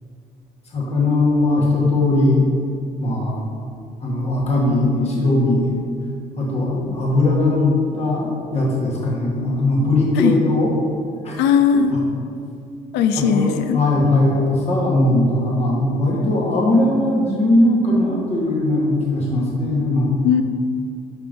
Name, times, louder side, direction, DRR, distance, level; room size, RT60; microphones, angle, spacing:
voice 1, 0.7-2.5 3.0-3.5 4.0-5.7 6.4-10.8 11.2-11.4 11.9-12.0 13.1-20.1, left 2 dB, 40° left, -4 dB, 1.7 m, -19 dB
voice 2, 11.4-12.0 12.9-13.8 20.2-20.4, left 7 dB, 90° left, 9 dB, 0.5 m, -17 dB
5.6 x 4.5 x 5.2 m, 2.3 s
cardioid pair, 110°, 17 cm